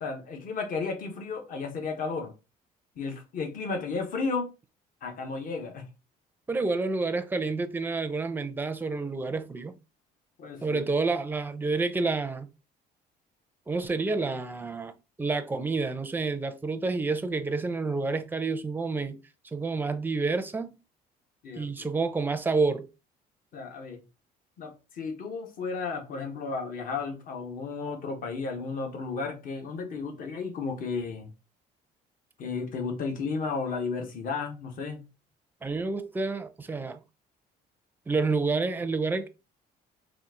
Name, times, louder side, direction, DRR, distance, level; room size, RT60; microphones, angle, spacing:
voice 1, 0.0-2.3 3.0-4.5 5.0-5.8 10.4-10.9 21.4-21.9 23.5-24.0 24.6-31.3 32.4-35.0, left 4 dB, 55° left, 1.1 m, -33 dB
voice 2, 6.5-9.7 10.6-12.5 13.7-19.2 19.5-20.8 21.6-22.9 35.6-37.0 38.1-39.3, right 3 dB, 10° right, 0.5 m, -29 dB
4.1 x 2.4 x 3.7 m
cardioid pair, 110°, 17 cm